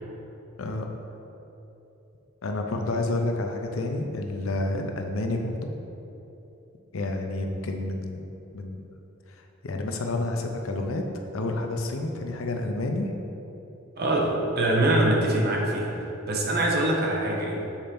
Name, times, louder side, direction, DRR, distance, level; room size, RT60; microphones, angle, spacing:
voice 1, 0.6-0.9 2.4-5.7 6.9-8.2 8.5-8.9 9.3-13.1, left 2 dB, 80° left, 3 dB, 0.7 m, -29 dB
voice 2, 14.0-17.6, right 1 dB, 50° right, -1 dB, 1.1 m, -24 dB
7.3 x 4.4 x 5.2 m, 3.0 s
head